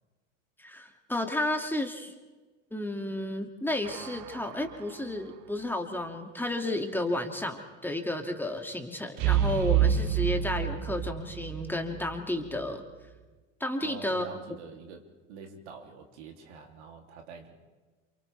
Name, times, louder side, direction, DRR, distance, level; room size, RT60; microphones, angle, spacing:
voice 1, 0.6-2.1 2.7-12.8 13.6-14.3, left 1 dB, 5° left, 3 dB, 2.6 m, -32 dB
sound 1, 3.8-4.7 9.2-12.2 12.4-12.6, right 10 dB, 50° right, 1.1 m, -28 dB
voice 2, 13.8-17.5, right 5 dB, 65° right, 3 dB, 3.3 m, -46 dB
29.5 x 28.5 x 3.5 m, 1.3 s
figure-of-eight pair, 75°, 37 cm